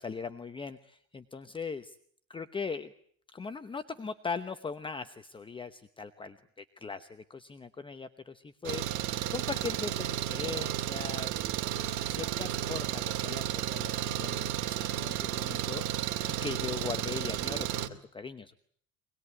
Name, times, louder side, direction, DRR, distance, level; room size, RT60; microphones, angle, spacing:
voice 1, 0.0-2.0 2.3-2.9 3.3-11.4 12.0-16.1 16.4-18.5, left 5 dB, 15° left, 10 dB, 1.0 m, -40 dB
Engine, 8.6-17.9, right 11 dB, 80° right, 2.4 m, -33 dB
24.5 x 20.0 x 9.7 m, 0.62 s
cardioid pair, 145°, 29 cm